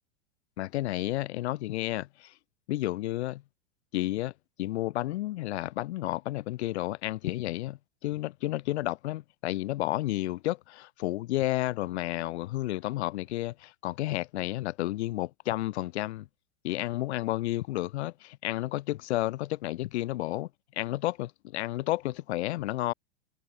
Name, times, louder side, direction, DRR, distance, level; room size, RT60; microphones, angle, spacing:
voice 1, 0.6-2.3 2.7-3.4 3.9-4.3 4.6-16.3 16.6-20.5 20.8-22.9, left 16 dB, 70° left, 1.0 m, -31 dB
hypercardioid pair, 120°, 35 cm